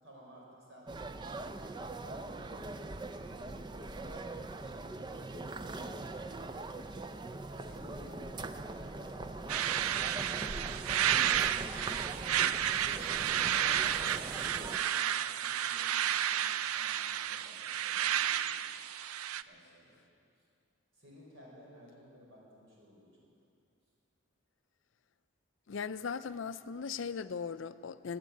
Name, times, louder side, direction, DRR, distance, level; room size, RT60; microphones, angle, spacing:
voice 1, 0.0-0.9 1.8-6.5 7.6-9.9 12.4-18.6 19.3-20.0 20.9-23.3, equal, 60° right, -3 dB, 5.0 m, -56 dB
sound 1, 0.9-14.8, right 2 dB, 20° right, 0.4 m, -42 dB
sound 2, 9.5-19.4, right 10 dB, 90° right, 0.4 m, -31 dB
voice 2, 25.7-28.2, left 6 dB, 60° left, 14 dB, 0.4 m, -38 dB
18.0 x 9.6 x 8.3 m, 2.4 s
head